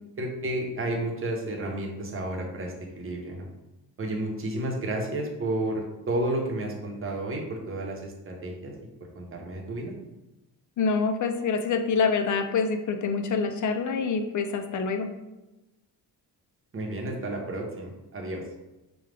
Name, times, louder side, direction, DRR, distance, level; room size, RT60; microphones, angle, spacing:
voice 1, 0.2-3.5 4.0-8.7 9.2-9.9 16.7-18.4, right 1 dB, 30° right, 0 dB, 0.8 m, -31 dB
voice 2, 10.8-15.1, left 5 dB, 50° left, 7 dB, 0.5 m, -26 dB
5.1 x 2.3 x 3.3 m, 1.0 s
cardioid pair, 115°, 40 cm